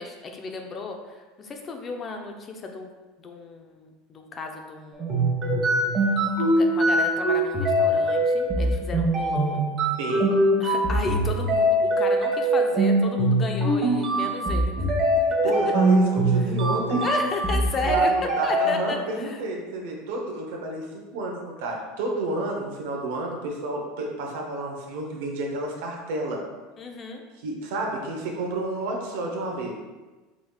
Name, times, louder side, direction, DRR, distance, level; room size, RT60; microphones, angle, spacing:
voice 1, 0.0-2.9 3.2-5.3 6.4-9.7 10.6-14.7 17.0-19.4 26.8-27.2, left 3 dB, 35° left, 3 dB, 0.6 m, -33 dB
sound 1, 5.0-18.7, right 1 dB, 35° right, 1.1 m, -22 dB
voice 2, 10.0-10.3 15.4-17.1 17.9-26.4 27.4-29.7, right 2 dB, 75° right, 0 dB, 0.9 m, -30 dB
4.9 x 3.5 x 2.3 m, 1.2 s
supercardioid pair, 100°, 0 cm